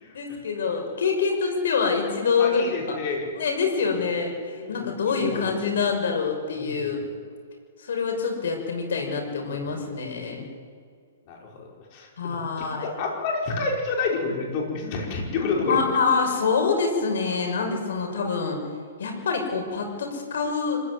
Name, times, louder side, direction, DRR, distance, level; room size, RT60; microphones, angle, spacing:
voice 1, 0.1-2.8 3.4-4.3 4.7-7.0 7.8-10.4 12.2-12.9 15.6-18.6 19.0-20.8, left 5 dB, 75° left, 3 dB, 6.0 m, -25 dB
voice 2, 2.4-3.3 4.5-4.9 5.2-5.8 6.6-7.0 9.5-9.9 11.3-15.8, left 4 dB, 35° left, 0 dB, 5.3 m, -30 dB
25.5 x 15.5 x 9.7 m, 2.1 s
hypercardioid pair, 160°, 0 cm